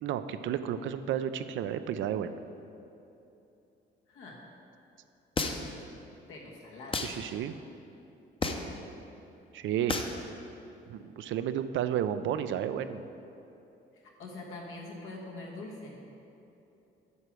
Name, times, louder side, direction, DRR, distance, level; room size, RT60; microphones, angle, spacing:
voice 1, 0.0-2.4 7.0-7.6 9.5-10.0 10.9-13.1, right 10 dB, 75° right, 11 dB, 0.4 m, -32 dB
voice 2, 4.1-4.4 6.3-7.0 13.9-16.0, left 2 dB, 90° left, -2 dB, 1.4 m, -44 dB
sound 1, 5.4-5.8 6.9-7.2 8.4-8.8 9.9-10.2, left 3 dB, 25° left, 0.6 m, -31 dB
8.1 x 4.6 x 6.1 m, 2.9 s
cardioid pair, 90°, 20 cm